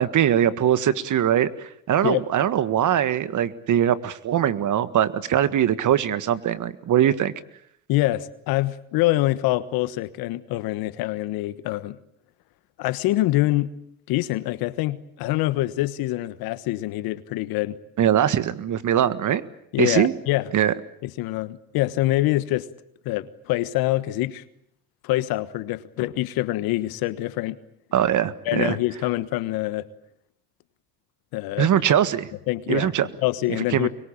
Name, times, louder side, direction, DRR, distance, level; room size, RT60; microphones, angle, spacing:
voice 1, 0.0-7.3 18.0-19.4 19.8-20.1 20.5-20.7 27.9-28.8 31.6-32.3 32.7-33.1 33.7-33.9, right 10 dB, 55° right, 15 dB, 1.7 m, -21 dB
voice 2, 7.9-12.0 12.8-13.7 14.1-17.8 19.7-20.5 21.0-22.7 23.0-24.4 25.0-27.6 28.4-29.9 31.3-31.7 32.5-32.9 33.2-33.9, left 17 dB, 75° left, 15 dB, 1.4 m, -25 dB
25.0 x 22.5 x 8.8 m, 0.73 s
supercardioid pair, 75°, 36 cm